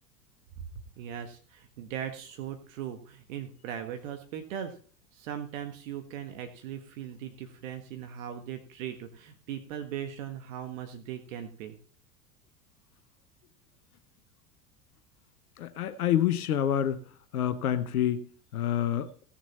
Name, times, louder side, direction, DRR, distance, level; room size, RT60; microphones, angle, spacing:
voice 1, 1.0-4.7 5.1-11.8, right 9 dB, 55° right, 1.6 m, -39 dB
voice 2, 15.6-17.0 17.3-19.2, left 10 dB, 65° left, 1.0 m, -28 dB
17.0 x 7.2 x 4.2 m
figure-of-eight pair, 85°, 47 cm